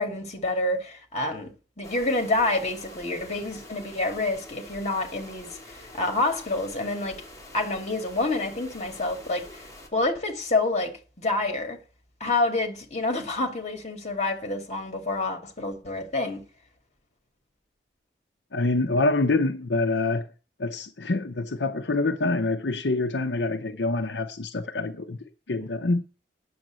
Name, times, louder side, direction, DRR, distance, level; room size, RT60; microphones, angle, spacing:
voice 1, 0.0-7.2 7.5-9.6 9.9-11.8 12.2-16.4, left 2 dB, 40° left, 2.4 m, -28 dB
sound 1, 1.8-9.9, left 1 dB, 20° left, 2.6 m, -46 dB
voice 2, 18.5-20.3 20.6-25.2 25.5-26.0, left 2 dB, 70° left, 0.8 m, -26 dB
9.4 x 7.2 x 7.5 m
head